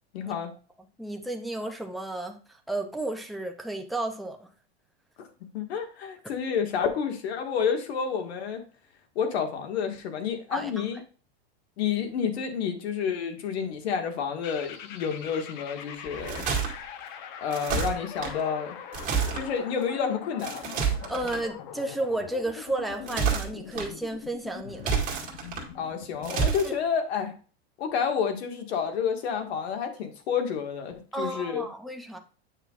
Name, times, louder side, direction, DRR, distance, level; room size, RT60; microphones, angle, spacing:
voice 1, 0.1-0.5 5.2-5.3 5.5-8.6 9.2-11.0 11.8-16.5 17.4-18.8 19.3-20.7 25.7-27.3 27.8-31.7, left 7 dB, 75° left, 1.8 m, -29 dB
voice 2, 0.8-4.5 10.5-10.9 21.1-25.0 26.6-26.7 31.1-32.2, right 2 dB, ahead, 0.4 m, -33 dB
sound 1, 14.4-26.5, left 9 dB, 45° left, 0.8 m, -43 dB
sound 2, 16.1-16.7 17.5-18.3 18.9-19.4 20.4-21.4 22.9-23.9 24.7-25.6 26.2-26.7, right 6 dB, 25° right, 1.9 m, -28 dB
9.1 x 5.8 x 2.5 m
supercardioid pair, 165°, 32 cm